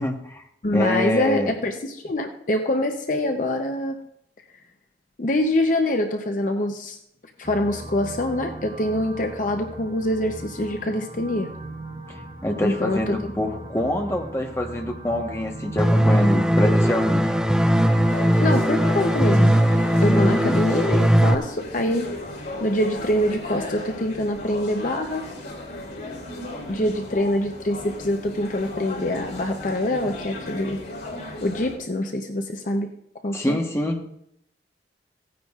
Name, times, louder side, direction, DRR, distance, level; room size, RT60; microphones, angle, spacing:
voice 1, 0.0-0.4 0.7-1.5 12.1-17.2 20.1-20.6 33.3-34.1, left 1 dB, 15° left, 2 dB, 1.2 m, -25 dB
voice 2, 0.6-4.0 5.2-7.0 7.4-11.5 12.6-13.2 18.4-19.6 20.0-22.1 22.6-25.2 26.7-30.8 31.4-32.9 33.2-33.6, left 1 dB, 45° left, 5 dB, 0.7 m, -25 dB
sound 1, 7.4-18.1, right 2 dB, 25° right, 1.3 m, -38 dB
sound 2, 15.8-21.3, equal, 5° right, 0.4 m, -19 dB
sound 3, 17.8-31.8, left 1 dB, 85° left, 3.5 m, -36 dB
17.0 x 9.5 x 2.4 m, 0.75 s
head